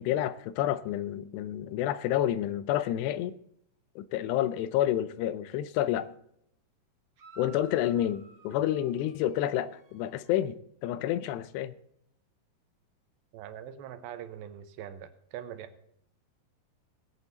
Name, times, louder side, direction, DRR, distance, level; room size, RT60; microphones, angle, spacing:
voice 1, 0.0-3.3 4.0-6.1 7.4-10.6 10.8-11.7, left 12 dB, 85° left, 15 dB, 2.8 m, -29 dB
sound 1, 7.2-10.4, right 4 dB, 45° right, 1.8 m, -55 dB
voice 2, 13.3-15.7, right 10 dB, 85° right, 10 dB, 3.2 m, -42 dB
19.5 x 8.5 x 4.0 m, 0.71 s
omnidirectional pair, 4.8 m